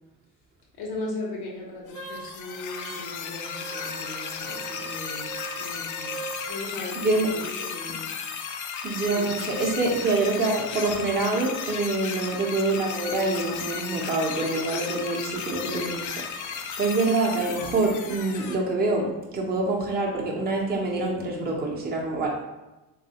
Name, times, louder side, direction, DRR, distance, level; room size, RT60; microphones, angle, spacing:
voice 1, 0.8-8.1 9.0-9.3 12.5-12.9 15.6-16.0, left 2 dB, 80° left, -3 dB, 0.8 m, -37 dB
sound 1, 1.9-18.6, left 7 dB, 55° left, 0.4 m, -35 dB
Wind instrument woodwind instrument, 1.9-6.5, right 4 dB, 75° right, 0.7 m, -41 dB
voice 2, 7.0-7.3 8.8-16.1 16.4-22.3, right 3 dB, 25° right, -3 dB, 0.6 m, -26 dB
3.3 x 2.3 x 2.7 m, 1.1 s
cardioid pair, 90°, 37 cm